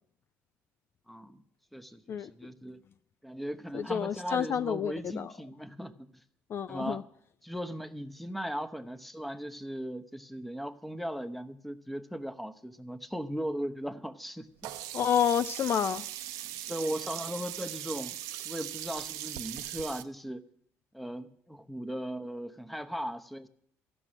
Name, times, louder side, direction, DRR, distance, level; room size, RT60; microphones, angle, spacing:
voice 1, 1.1-1.4 1.7-2.8 3.2-6.1 6.7-7.0 7.4-14.7 16.5-18.2 18.4-20.4 20.9-23.5, equal, ahead, 0.8 m, -38 dB
voice 2, 3.7-5.3 6.5-7.0 14.9-16.0, left 8 dB, 45° left, 0.4 m, -29 dB
Sink (filling or washing), 14.6-20.0, right 13 dB, 85° right, 0.6 m, -39 dB
13.5 x 6.2 x 9.8 m
cardioid pair, 95°, 6 cm